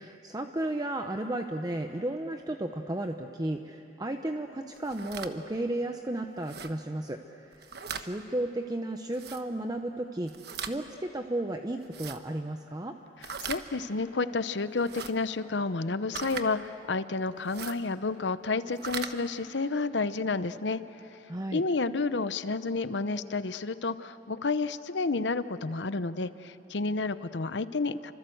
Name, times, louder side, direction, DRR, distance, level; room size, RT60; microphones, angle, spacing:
voice 1, 0.0-7.6 7.9-10.3 10.6-12.9 21.3-21.6, right 1 dB, 20° right, 5 dB, 0.8 m, -34 dB
sound 1, 4.8-5.3 6.4-6.7 7.5-8.1 9.1-9.4 10.3-10.8 11.8-12.2 13.2-13.6 14.8-15.1 16.1-16.5 17.4-17.8 18.7-19.1, right 6 dB, 60° right, 1.3 m, -39 dB
voice 2, 13.4-20.8 21.5-28.1, left 3 dB, 75° left, 13 dB, 0.8 m, -30 dB
29.5 x 25.5 x 7.9 m, 2.8 s
head